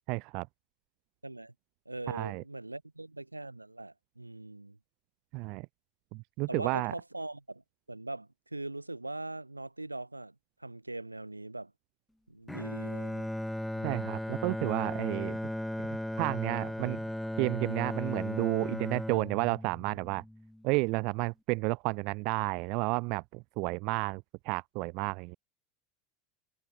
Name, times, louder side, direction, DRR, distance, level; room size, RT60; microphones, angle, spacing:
voice 1, 0.1-0.5 2.1-2.4 5.3-5.7 6.1-6.9 13.8-15.4 15.8-17.0 17.4-20.2 20.6-25.4, right 27 dB, 50° right, 0.6 m, -31 dB
voice 2, 1.2-1.5 1.9-4.8 6.5-7.6 7.9-10.3 10.6-11.7 12.3-13.3, right 2 dB, 85° right, 7.5 m, -41 dB
Bowed string instrument, 12.5-20.7, left 1 dB, 5° left, 2.8 m, -36 dB
figure-of-eight pair, 80°, 0 cm